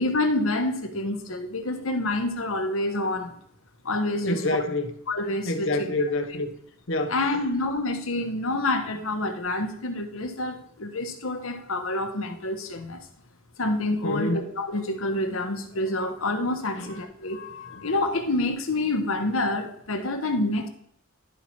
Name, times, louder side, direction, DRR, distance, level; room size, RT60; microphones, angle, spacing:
voice 1, 0.0-3.4 3.8-4.4 5.1-5.9 7.1-13.0 13.6-20.7, left 2 dB, 85° left, 1.1 m, -27 dB
voice 2, 4.2-4.9 5.4-6.5 6.9-7.2 14.0-14.4 16.8-16.9, left 2 dB, 65° left, 1.0 m, -27 dB
11.5 x 4.3 x 4.5 m
head